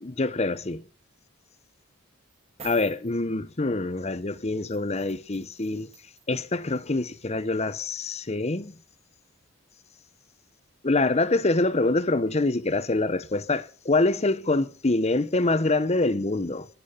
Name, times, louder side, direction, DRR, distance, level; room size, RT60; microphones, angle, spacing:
voice 1, 0.0-0.8 2.6-5.9 6.3-8.7 10.8-16.7, left 2 dB, 30° left, 0.8 m, -25 dB
sound 1, 2.3-3.1 4.7-6.4 6.7-6.8, right 6 dB, 30° right, 2.5 m, -47 dB
20.5 x 10.0 x 5.7 m
head